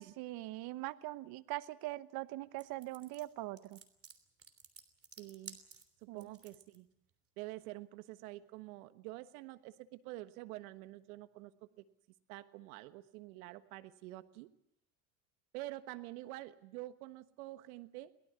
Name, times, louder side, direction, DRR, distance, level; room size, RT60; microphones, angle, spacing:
voice 1, 0.0-3.8 6.1-6.4, right 17 dB, 55° right, 15 dB, 1.1 m, -42 dB
sound 1, 2.6-6.8, right 6 dB, 30° right, 3.2 m, -54 dB
voice 2, 5.2-5.6 6.0-6.9 7.4-11.8 12.3-14.5 15.5-18.1, right 17 dB, 70° right, 11 dB, 1.4 m, -47 dB
23.5 x 18.0 x 8.2 m, 0.79 s
hypercardioid pair, 75°, 44 cm